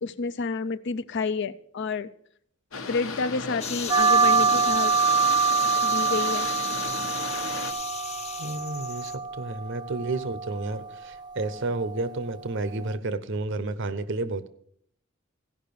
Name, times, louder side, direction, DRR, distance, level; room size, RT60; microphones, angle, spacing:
voice 1, 0.0-2.1 2.9-4.9 5.8-6.5, left 4 dB, 60° left, 15 dB, 0.5 m, -29 dB
Boat Water vehicle, 2.7-7.7, left 4 dB, 90° left, 1.2 m, -36 dB
sound 1, 3.6-9.2, left 7 dB, 35° left, 0.8 m, -35 dB
sound 2, 3.9-13.0, right 5 dB, 20° right, 0.5 m, -26 dB
voice 2, 8.4-14.5, right 2 dB, 65° right, 14 dB, 0.8 m, -31 dB
15.5 x 5.6 x 6.9 m, 0.67 s
head